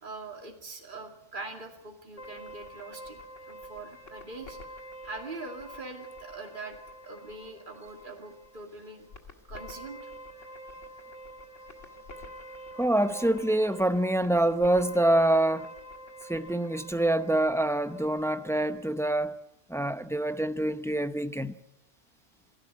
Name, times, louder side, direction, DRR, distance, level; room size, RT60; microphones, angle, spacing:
voice 1, 0.0-3.2 3.5-6.8 7.1-9.1 9.5-10.1, right 3 dB, 45° right, 2.5 m, -43 dB
sound 1, 2.2-19.3, equal, 85° left, 2.3 m, -47 dB
voice 2, 12.8-15.7 16.3-19.4 19.7-21.5, right 1 dB, 5° left, 0.6 m, -26 dB
27.5 x 12.0 x 9.3 m
omnidirectional pair, 1.2 m